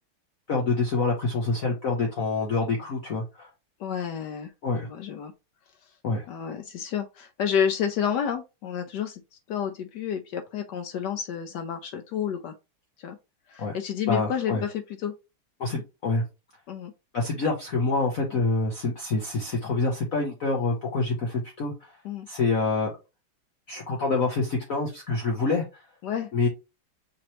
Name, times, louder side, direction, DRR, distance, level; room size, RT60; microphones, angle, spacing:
voice 1, 0.5-3.5 4.6-4.9 6.0-6.3 13.6-13.7 14.1-14.6 15.6-16.2 17.1-22.0 22.3-22.9 23.7-25.8 26.3-26.5, left 3 dB, 55° left, 1.0 m, -26 dB
voice 2, 3.8-4.5 4.8-5.3 6.3-9.2 9.5-12.5 13.0-13.2 13.5-15.1 16.7-16.9 18.3-18.4 22.0-22.3 26.0-26.3, left 8 dB, 85° left, 0.9 m, -30 dB
5.7 x 3.0 x 3.0 m
omnidirectional pair, 2.4 m